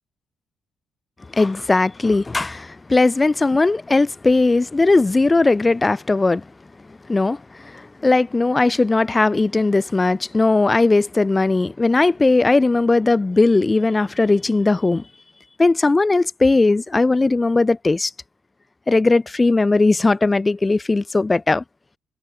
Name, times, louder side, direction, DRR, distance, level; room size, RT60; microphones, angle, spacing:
voice 1, 1.3-6.4 7.1-15.0 15.6-18.1 18.9-21.6, left 3 dB, 20° left, 5.5 m, -18 dB
cardioid pair, 90°, 0 cm